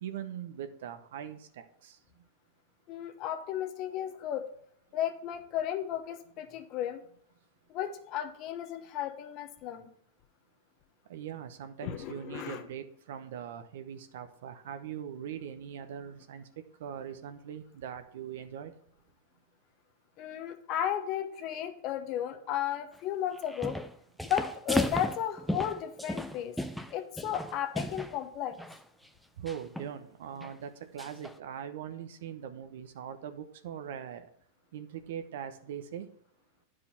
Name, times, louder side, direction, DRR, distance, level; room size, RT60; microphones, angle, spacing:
voice 1, 0.0-2.0 11.1-18.7 29.4-34.3 34.7-36.1, right 9 dB, 75° right, 10 dB, 0.9 m, -41 dB
voice 2, 2.9-4.5 4.9-7.0 7.7-9.9 11.8-12.7 20.2-23.8 24.2-26.5 26.9-28.6, left 10 dB, 45° left, 8 dB, 1.0 m, -34 dB
sound 1, 23.4-23.9 24.2-28.2 28.5-28.8 29.5-29.9 30.4-30.5 31.0-31.3, equal, ahead, 0.6 m, -35 dB
9.6 x 4.8 x 5.7 m, 0.68 s
hypercardioid pair, 115°, 0 cm